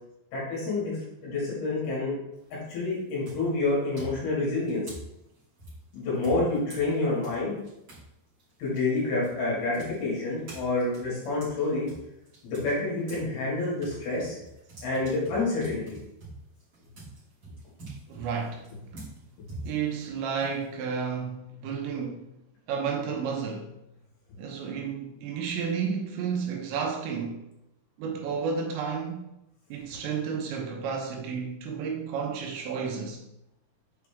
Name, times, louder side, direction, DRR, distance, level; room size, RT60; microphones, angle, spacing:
voice 1, 0.3-2.2 2.5-4.8 5.9-7.6 8.6-11.9 12.4-14.4 14.8-15.8 22.0-22.1, left 2 dB, 60° left, 4.1 m, -28 dB
sound 1, 2.3-2.7 3.2-8.1 8.4-13.3 13.6-21.0, right 2 dB, 30° right, 2.9 m, -46 dB
voice 2, 18.1-18.6 19.6-22.2 22.7-23.7 24.4-27.4 28.0-29.2 29.7-33.2, right 6 dB, 80° right, 3.3 m, -31 dB
8.0 x 4.9 x 3.5 m
omnidirectional pair, 5.2 m